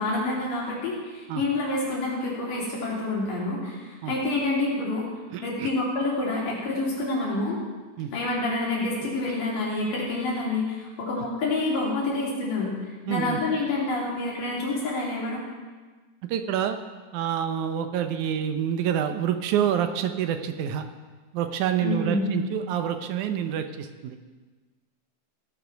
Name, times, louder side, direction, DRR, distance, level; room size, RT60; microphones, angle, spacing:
voice 1, 0.0-5.1 5.4-7.6 8.1-12.8 13.1-15.4 21.8-22.4, left 2 dB, 80° left, -5 dB, 4.6 m, -28 dB
voice 2, 5.3-5.7 8.0-8.1 13.1-13.4 16.3-16.8 17.1-20.9 21.3-24.2, right 9 dB, 75° right, 8 dB, 2.1 m, -27 dB
17.0 x 6.5 x 5.7 m, 1.3 s
omnidirectional pair, 3.7 m